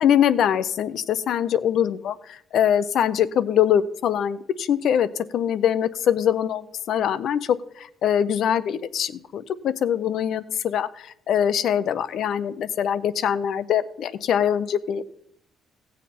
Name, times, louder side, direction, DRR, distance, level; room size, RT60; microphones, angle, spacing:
voice 1, 0.0-15.0, left 9 dB, 70° left, 14 dB, 0.5 m, -23 dB
16.0 x 7.3 x 4.3 m, 0.75 s
cardioid pair, 90°, 0 cm